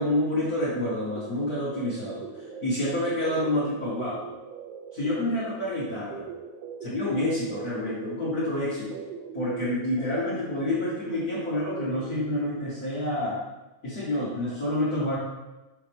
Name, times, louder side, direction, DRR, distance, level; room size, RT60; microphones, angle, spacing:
voice 1, 0.0-4.2 4.9-6.2 6.8-9.0 9.3-13.4 13.8-15.2, left 1 dB, 45° left, -8 dB, 1.3 m, -28 dB
sound 1, 1.1-12.4, right 6 dB, 85° right, 1.4 m, -41 dB
7.2 x 5.0 x 3.5 m, 1.0 s
omnidirectional pair, 3.5 m